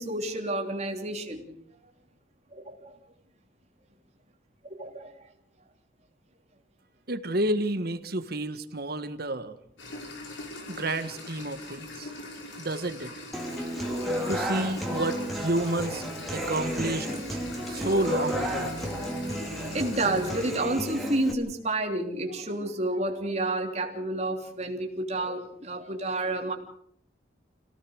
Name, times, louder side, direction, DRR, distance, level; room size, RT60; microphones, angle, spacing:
voice 1, 0.0-1.4 2.5-3.0 4.8-5.1 13.8-14.0 14.3-14.5 17.7-18.0 19.6-26.5, right 2 dB, 35° right, 3 dB, 3.3 m, -30 dB
voice 2, 7.1-9.5 10.7-12.1 12.6-13.1 14.3-16.0 16.3-17.4 17.7-18.7, right 1 dB, 55° right, 9 dB, 1.8 m, -30 dB
sound 1, 9.8-20.5, left 2 dB, 80° left, 5.4 m, -42 dB
Human voice / Acoustic guitar, 13.3-21.3, equal, ahead, 3.5 m, -32 dB
27.0 x 17.5 x 6.5 m, 0.69 s
head